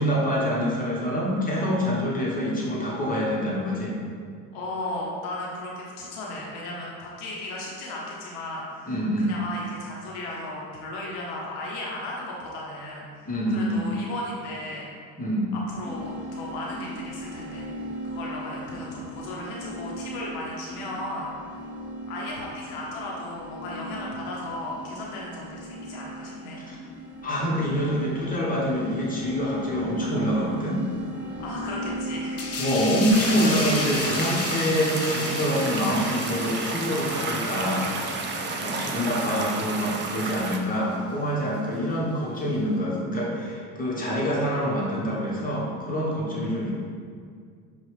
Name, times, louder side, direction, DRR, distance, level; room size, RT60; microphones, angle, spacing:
voice 1, 0.0-4.0 8.9-9.3 13.3-13.8 15.2-15.5 26.7-26.8 27.2-30.8 32.6-37.9 38.6-46.7, equal, 20° left, -5 dB, 1.0 m, -26 dB
voice 2, 4.5-14.9 15.5-21.3 22.1-26.6 31.4-32.5 38.7-39.4 41.6-41.8 46.3-46.7, left 1 dB, 85° left, -3 dB, 0.9 m, -36 dB
sound 1, 15.8-34.3, right 1 dB, ahead, 0.9 m, -37 dB
sound 2, 32.4-39.6 39.9-40.1, left 3 dB, 35° left, 0.6 m, -33 dB
sound 3, 33.1-40.6, right 3 dB, 25° right, 0.4 m, -31 dB
5.5 x 2.4 x 3.2 m, 2.1 s
supercardioid pair, 95°, 43 cm